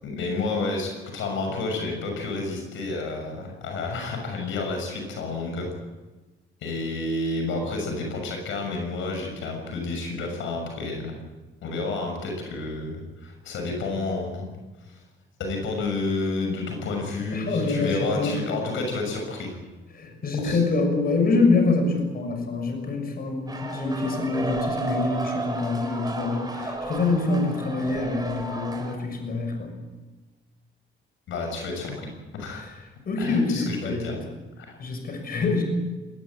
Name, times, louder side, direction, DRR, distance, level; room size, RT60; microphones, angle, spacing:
voice 1, 0.0-5.7 6.6-11.1 11.6-14.5 14.9-15.0 15.4-19.6 20.4-20.6 31.3-32.6 33.2-34.2 34.6-34.8, left 3 dB, 80° left, 3 dB, 6.6 m, -30 dB
voice 2, 17.3-18.3 19.9-29.8 33.0-34.1 34.8-35.6, left 3 dB, 50° left, 4 dB, 6.6 m, -25 dB
sound 1, 23.5-28.9, right 2 dB, 20° right, 4.5 m, -33 dB
20.5 x 18.5 x 8.8 m, 1.2 s
cardioid pair, 90°, 20 cm